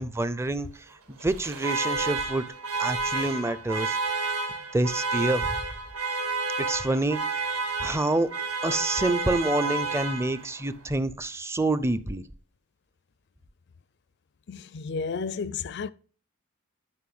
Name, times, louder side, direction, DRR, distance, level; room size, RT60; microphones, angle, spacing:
voice 1, 0.0-2.4 2.8-4.4 4.7-5.6 6.6-7.5 7.8-8.3 8.6-12.2, right 2 dB, 10° right, 0.5 m, -27 dB
Alarm, 1.2-10.6, right 3 dB, 85° right, 3.7 m, -30 dB
voice 2, 14.5-15.9, left 5 dB, 50° left, 0.4 m, -32 dB
11.5 x 5.5 x 7.9 m
head